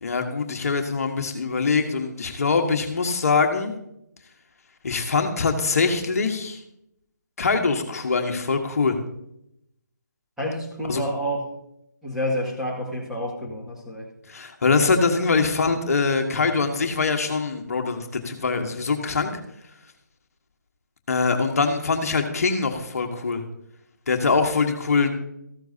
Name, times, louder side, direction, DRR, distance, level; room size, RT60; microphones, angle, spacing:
voice 1, 0.0-3.7 4.8-6.6 7.4-9.0 10.9-11.0 14.3-18.0 18.2-19.4 21.1-23.4 24.1-25.1, left 4 dB, 55° left, 4 dB, 1.4 m, -23 dB
voice 2, 10.4-11.5 12.0-14.1, equal, 5° right, -6 dB, 2.0 m, -29 dB
14.5 x 12.5 x 2.8 m, 0.80 s
figure-of-eight pair, 155°, 10 cm